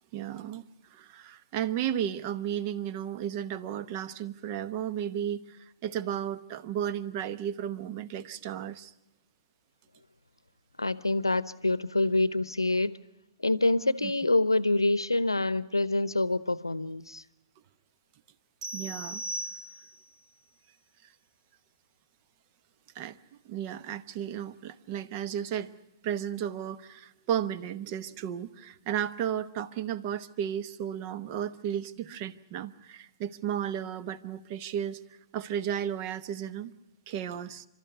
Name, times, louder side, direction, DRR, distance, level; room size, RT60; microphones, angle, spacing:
voice 1, 0.1-0.6 0.9-8.9 14.0-14.1 18.7-19.2 22.9-23.2 23.4-25.7 26.0-35.0 35.3-36.7 37.1-37.7, right 10 dB, 35° right, 0.9 m, -34 dB
voice 2, 10.8-12.9 13.4-17.2, left 2 dB, 85° left, 0.8 m, -26 dB
sound 1, 18.6-20.1, right 1 dB, 15° right, 1.3 m, -38 dB
30.0 x 13.0 x 9.6 m
figure-of-eight pair, 120°, 2 cm